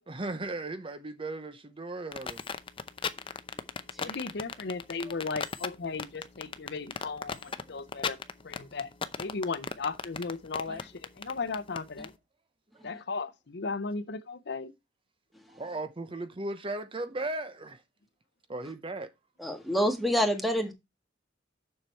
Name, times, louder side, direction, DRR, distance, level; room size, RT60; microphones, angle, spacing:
voice 1, 0.1-2.4 5.0-5.1 7.5-7.6 8.1-8.2 10.7-10.8 15.5-17.8 18.5-19.1, right 2 dB, 30° right, 0.8 m, -37 dB
sound 1, 2.1-12.1, left 5 dB, 30° left, 0.6 m, -36 dB
voice 2, 4.0-8.2 8.4-8.9 9.2-10.9 11.2-12.1 12.8-14.7, left 4 dB, 65° left, 0.7 m, -36 dB
voice 3, 19.4-20.7, equal, ahead, 1.6 m, -28 dB
7.2 x 6.6 x 4.5 m
head